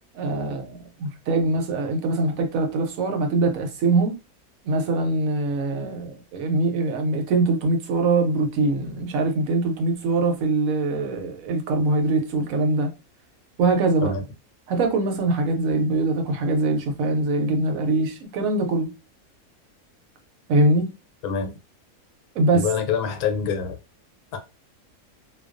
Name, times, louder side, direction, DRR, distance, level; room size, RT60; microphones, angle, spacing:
voice 1, 0.1-4.2 4.6-12.9 13.6-14.1 14.7-18.9 20.5-20.9 22.4-22.6, right 2 dB, 70° right, 0.9 m, -23 dB
voice 2, 22.5-23.8 24.3-24.4, left 6 dB, 80° left, 1.1 m, -25 dB
2.3 x 2.2 x 2.4 m
omnidirectional pair, 1.6 m